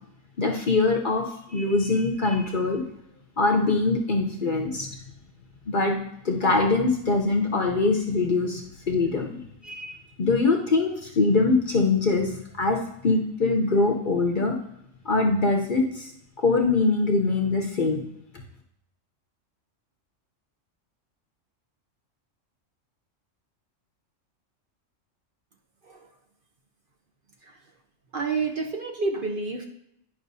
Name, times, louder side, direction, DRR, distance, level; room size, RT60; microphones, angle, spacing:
voice 1, 0.4-1.2 1.5-2.8 3.4-4.9 5.7-6.0 6.2-8.6 8.9-12.3 12.6-12.8 13.0-14.5 15.0-16.1 16.4-18.0, left 3 dB, 45° left, 1 dB, 0.8 m, -23 dB
voice 2, 28.1-29.6, right 4 dB, 50° right, 3 dB, 0.8 m, -29 dB
10.5 x 5.7 x 2.7 m, 0.76 s
omnidirectional pair, 1.4 m